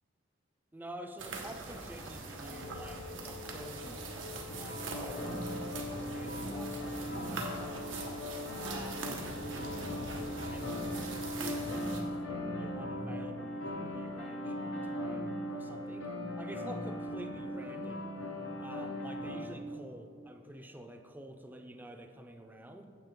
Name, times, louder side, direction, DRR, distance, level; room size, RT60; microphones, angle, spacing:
voice 1, 0.7-4.1 4.6-7.9 8.5-9.2 10.5-11.1 11.4-12.1 12.6-16.1 16.4-18.1 18.6-22.8, right 1 dB, 10° right, 5 dB, 0.5 m, -49 dB
sound 1, 1.2-12.0, right 2 dB, 90° right, 1.2 m, -42 dB
Wind instrument woodwind instrument, 2.4-10.9, left 8 dB, 60° left, 0.3 m, -49 dB
sound 2, 4.5-19.4, left 1 dB, 85° left, 1.1 m, -39 dB
9.0 x 7.6 x 3.7 m, 2.3 s
head